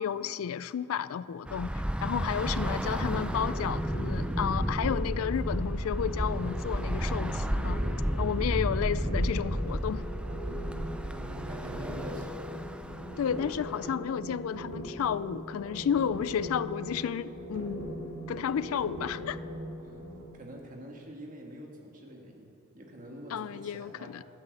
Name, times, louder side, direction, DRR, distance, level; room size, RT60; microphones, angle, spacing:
voice 1, 0.0-7.8 8.2-10.0 13.2-18.0 18.3-19.4 23.3-24.2, left 8 dB, 75° left, 17 dB, 0.3 m, -32 dB
Bus / Traffic noise roadway noise, 1.5-13.9, equal, 5° right, 0.4 m, -32 dB
sound 1, 2.8-20.2, equal, 80° right, 3.2 m, -40 dB
voice 2, 11.1-12.4 19.8-20.0 20.3-22.5 22.7-24.2, right 1 dB, 35° right, 0 dB, 1.9 m, -46 dB
13.0 x 8.9 x 7.9 m, 2.6 s
head